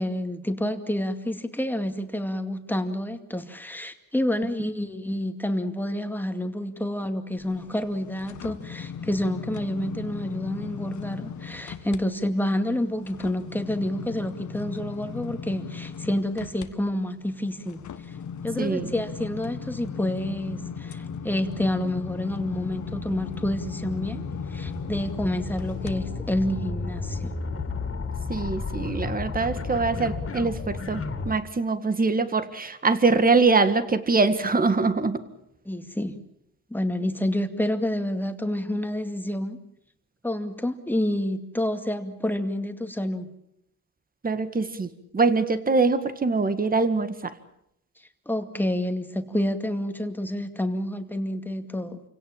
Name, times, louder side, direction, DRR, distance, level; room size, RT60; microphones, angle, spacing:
voice 1, 0.0-17.8 18.1-18.2 18.4-24.2 24.5-27.3 35.7-36.1 36.7-39.6 40.2-43.3 48.3-52.0, left 1 dB, 5° left, 6 dB, 2.3 m, -28 dB
sound 1, 7.4-12.0 12.4-25.9 26.4-26.5, left 6 dB, 70° left, 1.5 m, -38 dB
voice 2, 18.6-18.9 28.3-35.2 44.2-47.3, right 4 dB, 30° right, 11 dB, 2.0 m, -23 dB
sound 2, 18.8-31.3, left 4 dB, 45° left, 3.0 m, -34 dB
28.5 x 17.5 x 8.8 m, 0.78 s
cardioid pair, 115°, 31 cm